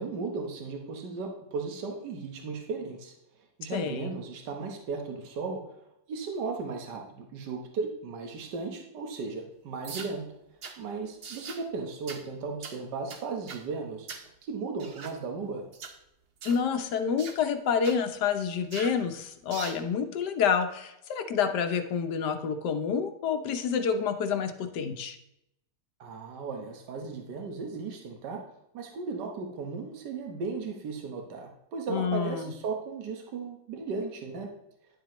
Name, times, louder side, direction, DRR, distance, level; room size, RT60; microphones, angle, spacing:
voice 1, 0.0-3.1 3.6-5.6 6.1-10.3 10.8-14.1 14.4-15.7 26.0-28.4 28.7-34.5, right 4 dB, 75° right, 2 dB, 1.7 m, -36 dB
voice 2, 3.7-4.1 16.4-25.2 31.9-32.5, left 6 dB, 70° left, 8 dB, 1.4 m, -28 dB
sound 1, 9.8-10.1 10.6-10.8 11.2-11.6 12.1-12.2 12.6-12.8 13.1-13.6 14.1-14.3 14.8-15.2 15.7-16.0 16.4-16.6 17.2-17.4 17.8-18.0 18.7-19.0 19.5-19.8, right 5 dB, 50° right, 0.7 m, -41 dB
10.5 x 7.4 x 3.0 m, 0.82 s
omnidirectional pair, 1.9 m